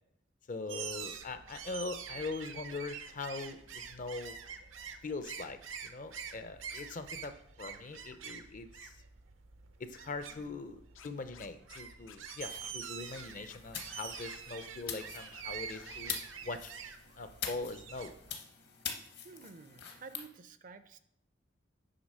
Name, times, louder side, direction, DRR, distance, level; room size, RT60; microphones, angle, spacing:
voice 1, 0.5-4.4 5.0-9.0 9.8-16.2 16.4-16.7 17.2-18.1, left 3 dB, 40° left, 10 dB, 0.5 m, -42 dB
sound 1, 0.7-18.3, right 7 dB, 80° right, 0.7 m, -46 dB
voice 2, 7.8-8.1 10.3-10.6 19.2-21.0, right 4 dB, 40° right, 10 dB, 0.4 m, -52 dB
Scratching (performance technique), 10.9-11.8 12.1-12.9 13.1-13.2 13.5-15.4 15.7-16.3, left 7 dB, 85° left, 0.6 m, -54 dB
sound 2, 12.4-20.3, left 7 dB, 55° left, 0.9 m, -45 dB
7.9 x 3.3 x 5.4 m, 0.76 s
head